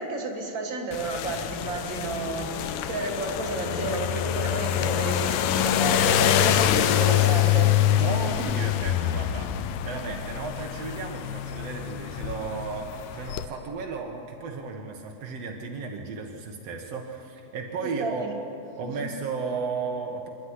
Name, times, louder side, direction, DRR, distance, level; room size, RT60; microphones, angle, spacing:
voice 1, 0.0-8.0 8.4-8.5 17.8-18.3 18.8-19.1, right 3 dB, 30° right, 1 dB, 2.9 m, -32 dB
sound 1, 0.9-13.5, left 11 dB, 80° left, 2.6 m, -25 dB
voice 2, 7.9-9.5 9.8-18.3 18.8-20.3, right 4 dB, 70° right, 1 dB, 1.5 m, -34 dB
26.5 x 12.0 x 9.9 m, 2.9 s
omnidirectional pair, 4.9 m